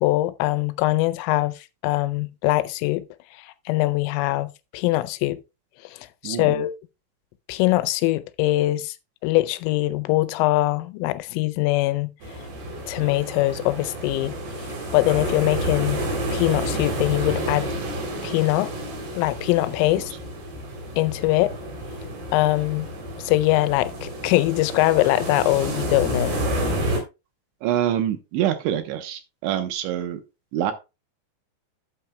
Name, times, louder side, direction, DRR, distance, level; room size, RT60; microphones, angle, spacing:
voice 1, 0.0-1.5 1.8-3.1 3.7-5.4 5.9-6.8 7.5-8.9 9.2-12.1 12.9-14.3 14.9-16.0 16.3-17.7 18.2-18.7 19.1-20.1 21.0-21.5 22.3-22.9 23.2-26.4, left 18 dB, 85° left, 3.2 m, -22 dB
voice 2, 6.2-6.7 15.2-15.3 20.0-20.1 27.6-30.2 30.5-30.7, right 11 dB, 75° right, 3.1 m, -26 dB
sound 1, 12.2-27.0, right 1 dB, 55° right, 5.0 m, -30 dB
11.5 x 8.8 x 2.2 m
omnidirectional pair, 5.8 m